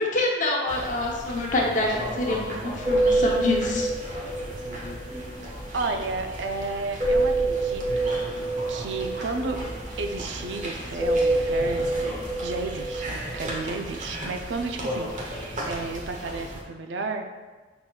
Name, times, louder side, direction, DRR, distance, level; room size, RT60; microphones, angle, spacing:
voice 1, 0.0-3.9, left 2 dB, 45° left, -2 dB, 0.8 m, -26 dB
sound 1, 0.7-16.6, equal, 45° right, 0.8 m, -36 dB
sound 2, 2.2-2.5 2.8-6.1 7.0-10.7 11.0-13.5, right 2 dB, 20° right, 1.4 m, -27 dB
voice 2, 5.7-8.2 8.7-9.6 10.0-12.0 12.4-17.2, right 3 dB, 80° right, 5 dB, 0.5 m, -32 dB
5.8 x 3.7 x 2.3 m, 1.3 s
head